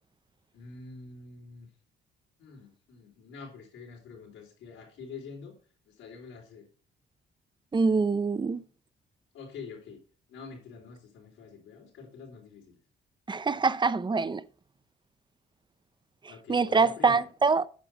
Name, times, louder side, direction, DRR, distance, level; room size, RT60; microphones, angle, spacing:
voice 1, 0.5-1.7 2.4-5.6 5.9-6.7 9.3-10.0 10.3-12.8 16.3-17.3, left 5 dB, 90° left, 4.2 m, -46 dB
voice 2, 7.7-8.6 13.3-14.4 16.5-17.7, right 4 dB, 25° right, 0.6 m, -24 dB
9.4 x 6.1 x 5.1 m
cardioid pair, 90°, 20 cm